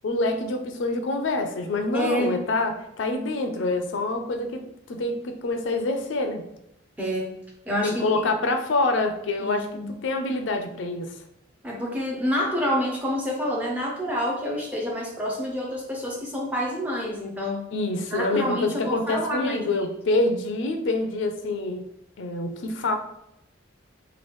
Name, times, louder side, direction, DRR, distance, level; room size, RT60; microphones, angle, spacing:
voice 1, 0.0-4.6 4.9-6.4 7.8-9.7 10.0-11.1 17.7-21.8 22.2-23.0, left 2 dB, 75° left, 6 dB, 0.4 m, -26 dB
voice 2, 1.9-2.3 7.0-7.4 7.7-8.1 9.4-9.9 11.6-17.6 18.1-19.8, equal, 10° right, -1 dB, 0.5 m, -28 dB
3.0 x 2.4 x 3.1 m, 0.82 s
head